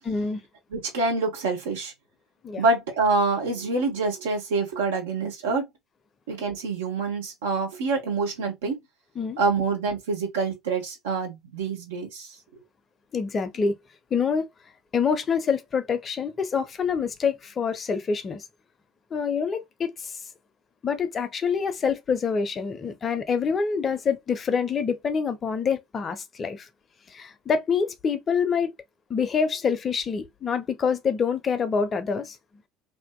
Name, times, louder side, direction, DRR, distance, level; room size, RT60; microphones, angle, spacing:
voice 1, 0.0-0.4 2.4-2.6 9.2-9.4 13.1-13.8 14.1-14.5 14.9-18.4 19.1-20.1 20.8-26.7 27.1-28.7 29.1-32.4, left 6 dB, 35° left, 0.5 m, -26 dB
voice 2, 0.7-1.9 2.6-5.7 6.3-8.8 9.4-12.6, right 3 dB, 70° right, 0.9 m, -26 dB
2.5 x 2.5 x 2.2 m
figure-of-eight pair, 65°, 0 cm